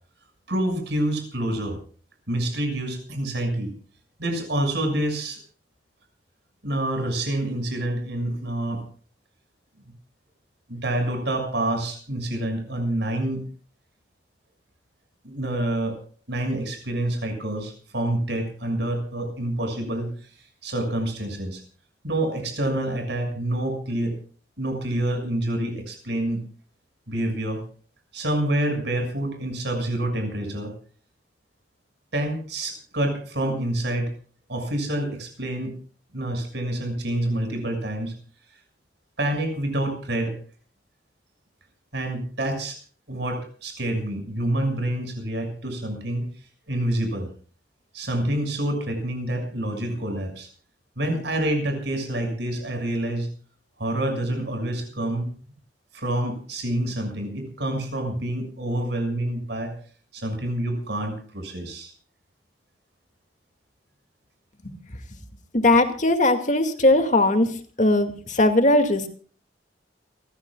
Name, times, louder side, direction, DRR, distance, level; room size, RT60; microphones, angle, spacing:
voice 1, 0.5-1.8 2.3-3.7 4.2-5.4 6.6-8.8 10.7-13.4 15.2-15.9 16.3-21.6 22.0-24.2 24.6-26.4 27.1-27.6 28.1-30.7 32.1-34.1 34.5-35.7 36.1-38.1 39.2-40.4 41.9-42.8 43.1-46.3 46.7-47.3 47.9-50.5 51.0-53.3 53.8-55.3 55.9-59.7 60.1-61.9, right 1 dB, 65° right, 6 dB, 6.6 m, -27 dB
voice 2, 65.5-69.1, left 2 dB, 45° left, 6 dB, 2.3 m, -19 dB
29.5 x 15.0 x 2.4 m, 0.44 s
head